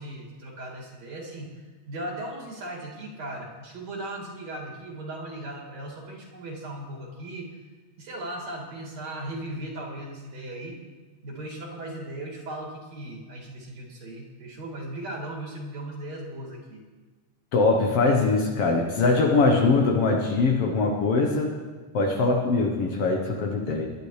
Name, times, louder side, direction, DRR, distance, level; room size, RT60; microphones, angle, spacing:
voice 1, 0.0-1.5 1.9-7.5 8.0-10.8 11.2-16.8, right 1 dB, 65° right, -3 dB, 3.6 m, -37 dB
voice 2, 17.5-21.6 21.9-23.9, left 3 dB, 60° left, 1 dB, 1.8 m, -22 dB
20.5 x 10.5 x 3.2 m, 1.3 s
omnidirectional pair, 3.3 m